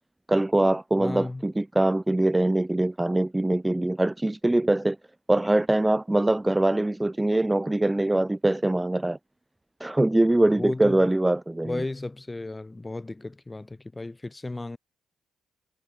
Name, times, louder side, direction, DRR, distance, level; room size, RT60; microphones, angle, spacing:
voice 1, 0.3-5.0 5.3-9.2 9.8-11.8, right 1 dB, 10° right, 0.4 m, -23 dB
voice 2, 1.0-1.4 10.4-11.0 11.6-14.8, left 2 dB, 15° left, 1.8 m, -34 dB
cardioid pair, 90°, 0 cm